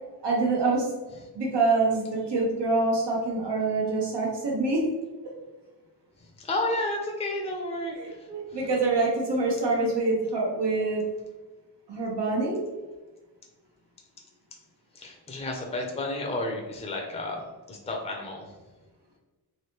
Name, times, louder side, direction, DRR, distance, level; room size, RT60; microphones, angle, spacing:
voice 1, 0.2-0.9 1.3-4.8 8.0-11.0 11.9-12.6, right 3 dB, 85° right, -3 dB, 1.2 m, -25 dB
voice 2, 6.2-8.6 14.9-18.5, left 2 dB, 15° left, 0 dB, 0.5 m, -32 dB
3.2 x 2.6 x 2.9 m, 1.2 s
wide cardioid pair, 160°, 40 cm